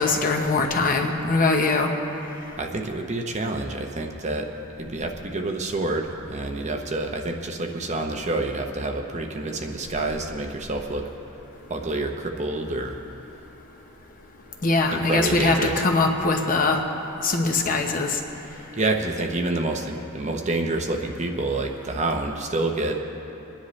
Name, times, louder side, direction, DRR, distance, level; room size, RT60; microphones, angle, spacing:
voice 1, 0.0-1.9 14.6-16.8 17.2-18.2, left 3 dB, 40° left, 2 dB, 1.0 m, -22 dB
voice 2, 2.6-4.5 4.8-11.1 11.7-13.0 14.9-15.8 18.7-23.0, right 2 dB, 30° right, 3 dB, 0.8 m, -28 dB
25.5 x 10.0 x 3.2 m, 3.0 s
head